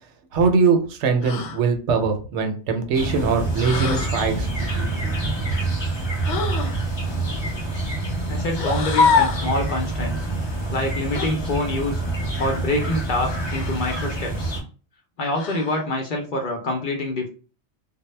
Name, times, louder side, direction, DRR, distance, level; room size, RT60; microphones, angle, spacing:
voice 1, 0.3-4.9, right 5 dB, 80° right, 6 dB, 0.9 m, -22 dB
sound 1, 1.2-1.6 3.6-4.2 6.2-6.8 8.5-9.5 11.1-11.3 13.4-13.9 15.3-15.8, left 5 dB, 85° left, 0.9 m, -24 dB
sound 2, 2.9-14.6, right 2 dB, 25° left, 0.8 m, -27 dB
voice 2, 8.3-10.3 10.7-12.0 12.4-14.5 15.2-17.3, left 2 dB, 60° left, 1 dB, 0.6 m, -26 dB
2.1 x 2.0 x 3.1 m, 0.37 s
omnidirectional pair, 1.2 m